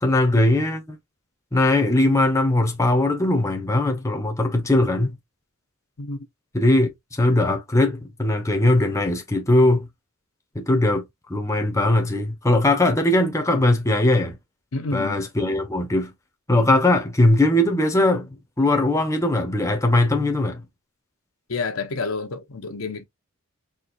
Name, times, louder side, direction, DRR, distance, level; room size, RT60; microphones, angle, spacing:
voice 1, 0.0-1.0 1.5-5.2 6.5-9.9 10.5-11.0 11.3-14.4 14.9-16.1 16.5-18.3 18.6-20.6, left 1 dB, 15° left, 0.8 m, -20 dB
voice 2, 14.7-15.2 21.5-23.1, left 3 dB, 80° left, 0.8 m, -29 dB
4.3 x 2.7 x 2.5 m
head